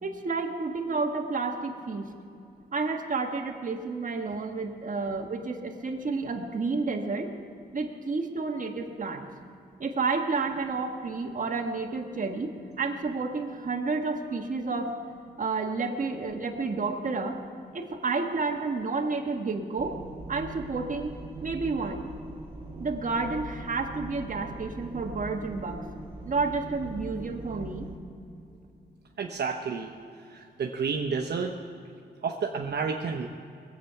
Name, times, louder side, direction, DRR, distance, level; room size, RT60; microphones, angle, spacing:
voice 1, 0.0-2.1 2.7-7.3 7.7-9.3 9.8-15.0 15.4-17.4 17.7-20.0 20.3-22.0 22.8-25.8 26.2-27.9, right 4 dB, 50° right, 3 dB, 1.4 m, -30 dB
sound 1, 19.8-28.0, right 1 dB, 30° right, 1.6 m, -41 dB
voice 2, 29.2-29.9 30.3-31.5 32.2-33.3, right 5 dB, 70° right, 1 dB, 0.9 m, -30 dB
20.5 x 8.1 x 5.8 m, 2.6 s
wide cardioid pair, 95°, 18 cm